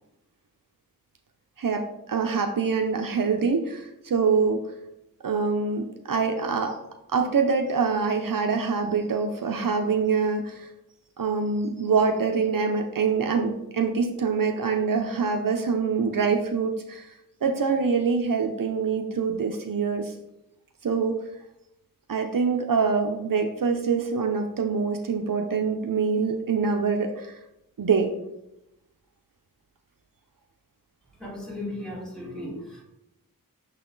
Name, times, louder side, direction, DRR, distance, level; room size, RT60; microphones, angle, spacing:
voice 1, 1.6-4.6 5.2-6.8 7.1-10.7 11.2-17.1 17.4-20.1 20.8-21.2 22.1-27.3 27.8-28.1, right 5 dB, 65° right, 3 dB, 0.6 m, -25 dB
voice 2, 31.2-32.8, left 1 dB, ahead, -5 dB, 2.3 m, -36 dB
6.3 x 4.1 x 3.9 m, 0.86 s
wide cardioid pair, 75°, 35 cm